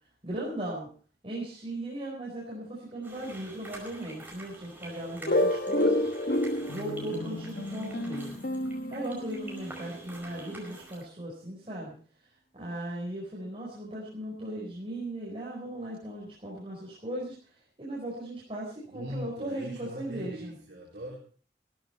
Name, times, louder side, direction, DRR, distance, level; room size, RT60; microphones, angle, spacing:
voice 1, 0.2-0.9 1.2-6.1 6.6-8.4 8.9-11.9 12.5-17.4 17.8-20.5, right 1 dB, 30° right, -5 dB, 4.5 m, -37 dB
sound 1, 3.0-11.0, right 2 dB, 10° right, 5.0 m, -47 dB
sound 2, 5.3-9.8, left 1 dB, 55° left, 1.0 m, -29 dB
voice 2, 18.8-21.2, equal, 70° right, -4 dB, 3.7 m, -40 dB
15.5 x 14.0 x 4.4 m, 0.42 s
head